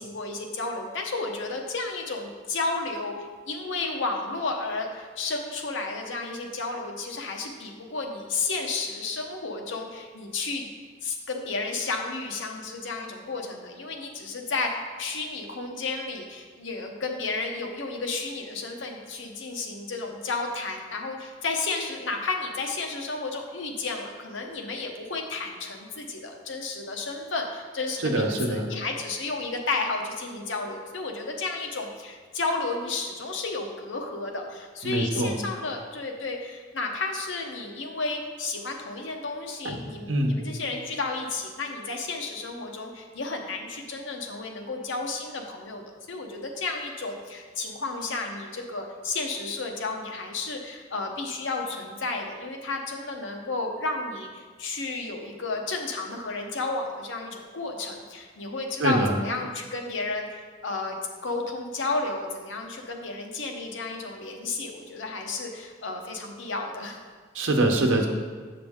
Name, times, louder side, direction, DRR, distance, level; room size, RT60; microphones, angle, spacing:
voice 1, 0.0-3.1 3.5-10.7 11.0-67.0, left 3 dB, 75° left, 2 dB, 0.9 m, -32 dB
voice 2, 28.0-28.7 34.8-35.3 39.6-40.3 58.8-59.1 67.3-68.1, right 1 dB, 80° right, 2 dB, 0.9 m, -24 dB
7.9 x 5.9 x 3.6 m, 1.5 s
head